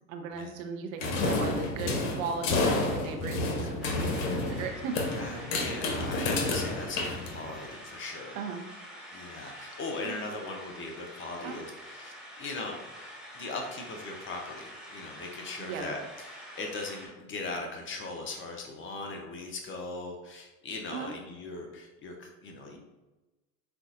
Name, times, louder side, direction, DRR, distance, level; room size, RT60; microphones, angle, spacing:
voice 1, 0.1-5.5 8.3-8.6 10.0-10.2 11.4-11.6 15.6-15.9 20.9-21.1, right 5 dB, 55° right, 4 dB, 0.8 m, -38 dB
sound 1, 1.0-7.7, left 2 dB, 55° left, 0.9 m, -30 dB
sound 2, 3.8-17.1, equal, ahead, 1.2 m, -47 dB
voice 2, 5.2-8.4 9.1-12.8 13.3-16.0 16.3-22.8, left 3 dB, 25° left, 3 dB, 0.7 m, -39 dB
7.7 x 2.6 x 2.4 m, 1.1 s
figure-of-eight pair, 75°, 47 cm